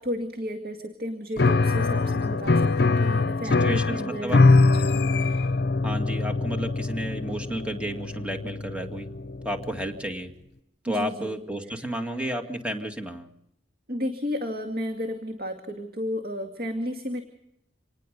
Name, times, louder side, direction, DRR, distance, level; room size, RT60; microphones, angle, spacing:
voice 1, 0.0-4.4 4.6-5.5 10.9-11.4 11.7-12.1 13.9-17.2, equal, 55° right, 4 dB, 2.2 m, -33 dB
Piano, 1.4-9.8, left 3 dB, 60° left, 0.8 m, -23 dB
voice 2, 3.6-4.4 5.8-9.1 9.4-10.3 10.8-13.3, equal, 5° right, 4 dB, 2.3 m, -32 dB
27.0 x 19.5 x 5.4 m, 0.78 s
head